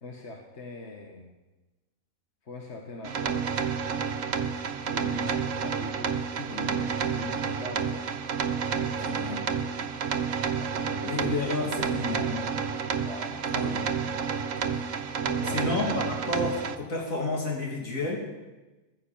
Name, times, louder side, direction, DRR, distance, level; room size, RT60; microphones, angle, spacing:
voice 1, 0.0-1.4 2.4-4.5 4.9-8.3 8.7-9.9 10.6-12.5 13.0-13.5 15.2-15.7, left 2 dB, 55° left, 2 dB, 1.8 m, -43 dB
sound 1, 3.0-16.8, right 6 dB, 65° right, 1.3 m, -30 dB
voice 2, 6.3-6.7 9.1-9.4 11.0-12.5 13.5-14.1 14.6-14.8 15.5-18.2, left 2 dB, 70° left, -1 dB, 3.6 m, -31 dB
15.0 x 10.0 x 8.8 m, 1.1 s
omnidirectional pair, 1.5 m